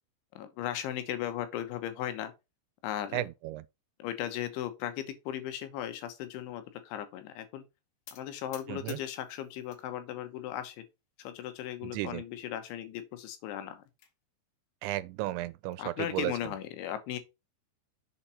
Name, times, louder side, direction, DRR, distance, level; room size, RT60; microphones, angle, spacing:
voice 1, 0.4-2.3 2.8-3.3 4.0-7.6 8.1-10.9 11.2-13.8 15.8-17.2, left 11 dB, 85° left, 3.5 m, -37 dB
voice 2, 3.1-3.6 8.7-9.0 11.8-12.2 14.8-16.3, right 16 dB, 85° right, 2.9 m, -34 dB
sound 1, 8.1-9.9 10.2-10.9 11.4-11.5 11.8-11.9 12.3-12.4 13.5-14.1, left 9 dB, 65° left, 2.5 m, -54 dB
7.3 x 4.3 x 5.6 m
omnidirectional pair, 5.3 m